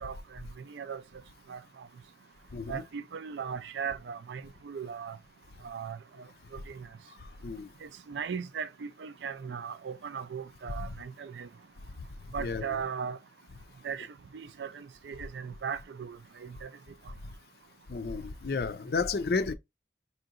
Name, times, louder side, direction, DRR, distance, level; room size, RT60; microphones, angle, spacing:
voice 1, 0.0-1.0 1.5-1.9 2.7-5.2 5.6-6.0 6.5-6.9 7.8-11.5 12.3-13.2 13.8-14.1 14.3-16.7, right 6 dB, 85° right, 0.4 m, -38 dB
voice 2, 17.9-19.5, left 4 dB, 60° left, 0.4 m, -31 dB
4.4 x 2.8 x 2.5 m
head